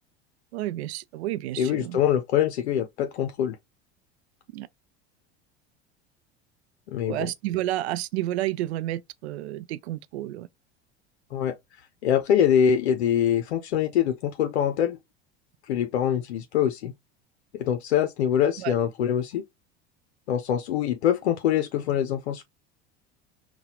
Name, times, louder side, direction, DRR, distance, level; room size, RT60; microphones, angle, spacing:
voice 1, 0.5-2.0 4.5-4.7 7.1-10.5 18.6-18.7, right 15 dB, 85° right, 0.5 m, -30 dB
voice 2, 1.6-3.6 6.9-7.3 11.3-11.5 12.0-15.0 15.6-16.9 17.6-19.4 20.3-22.4, left 9 dB, 90° left, 0.6 m, -24 dB
3.9 x 2.3 x 2.7 m
hypercardioid pair, 90°, 32 cm